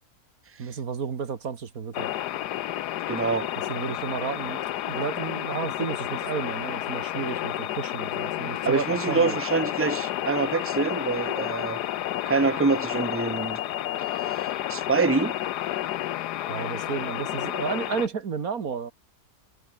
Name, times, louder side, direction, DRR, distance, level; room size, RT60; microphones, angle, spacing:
voice 1, 0.6-2.1 3.7-9.4 16.5-18.9, right 6 dB, 60° right, 2.1 m, -32 dB
sound 1, 1.9-18.1, left 13 dB, 80° left, 1.3 m, -31 dB
voice 2, 3.1-3.5 8.6-11.8 12.3-13.6 14.7-15.4, right 4 dB, 10° right, 0.9 m, -25 dB
omnidirectional pair, 1.7 m